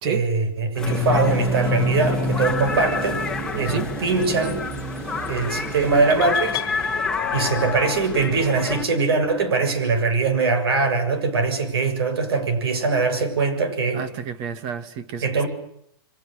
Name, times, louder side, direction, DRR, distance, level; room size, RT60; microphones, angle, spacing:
voice 1, 0.0-4.7 5.3-7.0 7.3-14.0 15.2-15.5, right 4 dB, 70° right, 9 dB, 7.2 m, -22 dB
sound 1, 0.7-8.8, left 4 dB, 5° left, 2.1 m, -30 dB
sound 2, 0.8-7.8, left 1 dB, 20° right, 3.6 m, -29 dB
sound 3, 6.1-8.1, left 17 dB, 30° left, 1.9 m, -31 dB
voice 2, 13.9-15.4, right 6 dB, 40° right, 10 dB, 2.4 m, -30 dB
28.0 x 24.0 x 6.7 m, 0.72 s
hypercardioid pair, 135°, 13 cm